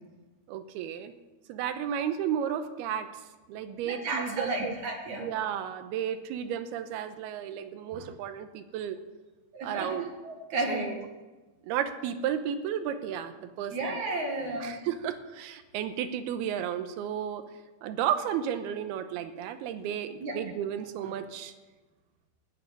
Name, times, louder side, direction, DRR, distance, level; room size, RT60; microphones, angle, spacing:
voice 1, 0.5-1.1 1.5-3.1 3.5-4.8 5.2-9.0 9.6-10.1 10.7-11.1 11.6-14.0 14.6-17.4 17.8-21.5, right 9 dB, 75° right, 9 dB, 2.5 m, -33 dB
voice 2, 3.9-5.3 9.5-10.0 10.2-10.9 13.7-14.8 20.2-20.4, right 2 dB, 55° right, 1 dB, 2.4 m, -32 dB
15.5 x 7.6 x 9.7 m, 1.2 s
omnidirectional pair, 5.3 m